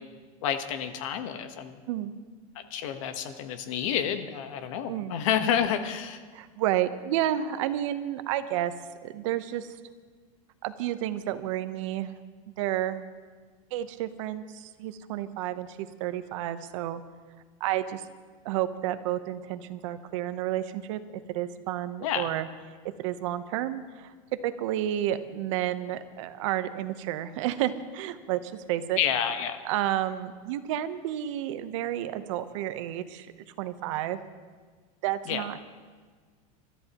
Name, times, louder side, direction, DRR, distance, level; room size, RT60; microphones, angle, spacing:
voice 1, 0.4-1.8 2.5-6.2 22.0-22.3 29.0-29.6 35.3-35.4, left 9 dB, 60° left, 8 dB, 1.2 m, -29 dB
voice 2, 6.3-8.7 9.0-9.7 10.6-12.2 12.6-13.0 13.7-17.0 17.6-18.0 18.4-21.0 21.3-22.5 23.0-24.1 24.4-29.0 29.6-33.3 33.6-34.2 35.0-35.6, right 12 dB, 60° right, 11 dB, 0.9 m, -31 dB
27.5 x 13.0 x 3.0 m, 1.5 s
supercardioid pair, 160°, 18 cm